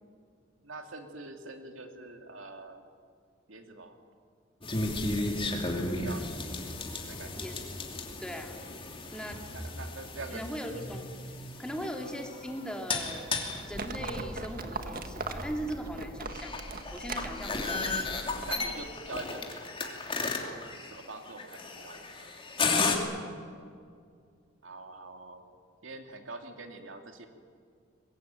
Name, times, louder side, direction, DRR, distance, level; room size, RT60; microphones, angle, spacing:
voice 1, 0.6-2.8 3.5-3.9 5.3-6.7 7.1-7.5 9.5-10.8 11.8-12.0 18.5-20.0 20.4-22.3 24.6-25.4 25.8-27.3, right 3 dB, 75° right, 5 dB, 2.5 m, -44 dB
sound 1, 4.6-23.0, left 3 dB, 25° left, 3.0 m, -35 dB
voice 2, 8.2-8.6 9.1-9.4 10.3-11.1 11.6-13.3 13.6-17.9 22.7-23.0, equal, 5° left, 2 dB, 2.7 m, -39 dB
Livestock farm animals working animals, 13.7-18.9, right 3 dB, 50° right, 1.8 m, -40 dB
24.0 x 21.5 x 9.3 m, 2.2 s
head